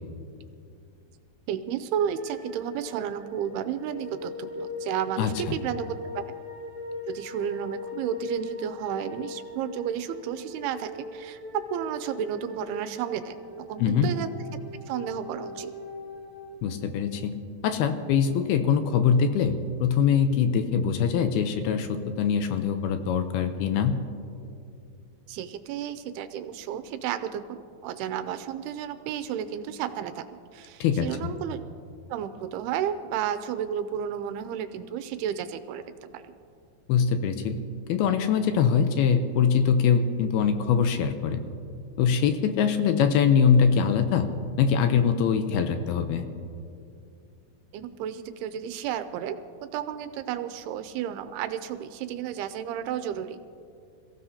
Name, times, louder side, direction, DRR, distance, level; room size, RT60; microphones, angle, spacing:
voice 1, 1.5-6.2 7.1-13.4 13.7-14.3 14.9-15.7 25.3-30.3 30.5-31.7 32.1-36.3 47.7-49.4 49.7-53.4, right 9 dB, 80° right, 10 dB, 2.5 m, -32 dB
sound 1, 2.0-17.1, left 2 dB, 15° left, 5.0 m, -40 dB
voice 2, 13.8-14.1 16.6-17.3 17.6-24.0 30.8-31.3 36.9-37.6 37.9-41.4 42.0-44.3 44.6-46.3, left 7 dB, 80° left, 8 dB, 2.6 m, -23 dB
27.5 x 15.5 x 2.8 m, 2.4 s
omnidirectional pair, 4.7 m